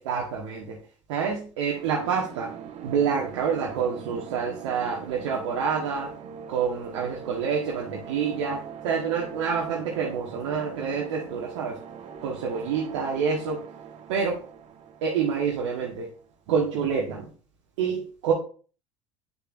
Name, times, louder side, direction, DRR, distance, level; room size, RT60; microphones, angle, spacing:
voice 1, 0.0-0.8 1.1-2.5 2.8-6.1 6.5-11.8 12.2-13.6 14.1-14.4 15.0-16.1 16.5-17.3 17.8-18.3, right 6 dB, 65° right, -2 dB, 1.5 m, -27 dB
sound 1, 1.6-16.3, right 7 dB, 40° right, 1.1 m, -43 dB
9.0 x 6.9 x 2.5 m, 0.38 s
figure-of-eight pair, 70°, 16 cm